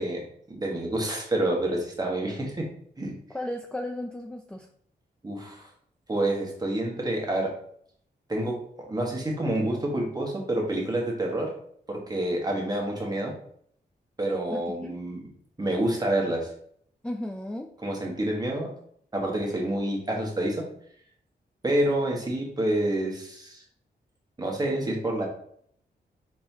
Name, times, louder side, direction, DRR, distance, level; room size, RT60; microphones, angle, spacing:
voice 1, 0.0-2.7 3.0-3.1 5.2-5.7 6.1-7.5 8.3-11.5 11.9-13.3 14.2-15.2 15.6-16.5 17.8-18.7 19.1-20.7 21.6-23.6 24.4-25.3, right 1 dB, 25° right, 0 dB, 1.4 m, -28 dB
voice 2, 3.3-4.7 14.5-14.9 17.0-17.7, left 1 dB, 5° left, 4 dB, 0.4 m, -34 dB
4.4 x 4.2 x 2.8 m, 0.63 s
cardioid pair, 85°, 17 cm